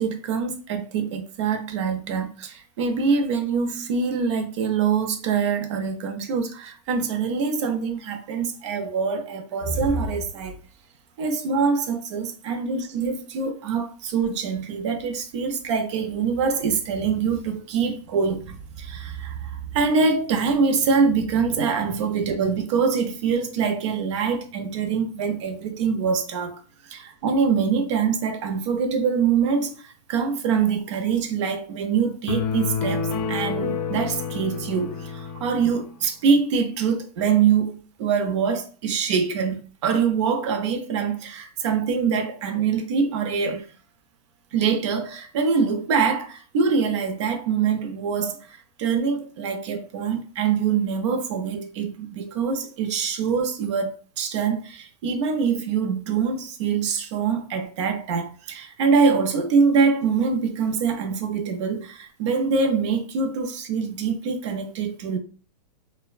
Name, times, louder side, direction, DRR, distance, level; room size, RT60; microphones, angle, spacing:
voice 1, 0.0-10.6 11.2-26.6 26.9-43.7 44.5-65.2, right 5 dB, 45° right, 0.5 m, -24 dB
sound 1, 32.3-35.8, left 6 dB, 90° left, 0.6 m, -28 dB
2.5 x 2.1 x 2.4 m
hypercardioid pair, 155°, 21 cm